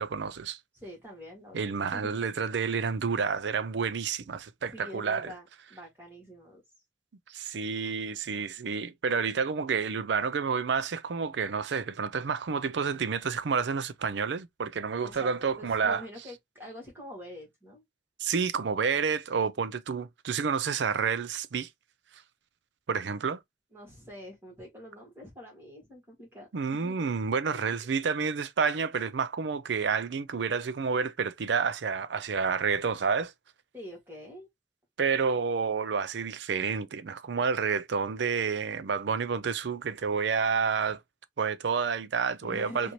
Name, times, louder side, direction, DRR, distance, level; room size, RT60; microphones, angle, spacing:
voice 1, 0.0-0.6 1.5-5.3 7.3-16.0 18.2-21.7 22.9-23.4 26.5-33.3 35.0-41.0 41.4-42.9, right 5 dB, 75° right, 0.5 m, -29 dB
voice 2, 0.7-2.1 4.6-6.6 15.0-17.8 23.7-27.1 27.5-27.8 33.7-34.5 42.4-42.9, equal, 10° right, 2.0 m, -46 dB
4.2 x 2.6 x 3.0 m
head